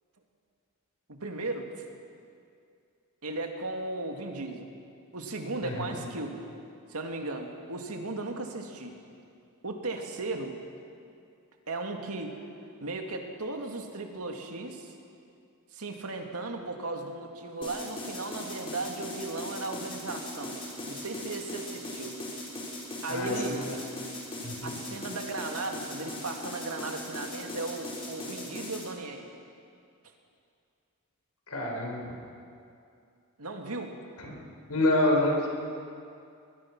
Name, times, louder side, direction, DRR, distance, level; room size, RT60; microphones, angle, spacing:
voice 1, 1.1-1.8 3.2-4.7 5.1-6.4 6.9-8.9 9.6-10.5 11.7-12.4 12.8-14.9 15.7-20.6 20.9-22.2 23.0-23.6 24.6-29.3 33.4-33.9, right 2 dB, 80° right, 3 dB, 2.3 m, -36 dB
sound 1, 17.6-28.9, left 1 dB, 25° left, 4.1 m, -39 dB
voice 2, 23.1-23.7 24.4-24.8 31.5-32.1 34.2-34.3 34.7-35.5, left 1 dB, 85° left, 0 dB, 4.6 m, -27 dB
21.5 x 21.0 x 6.1 m, 2.4 s
head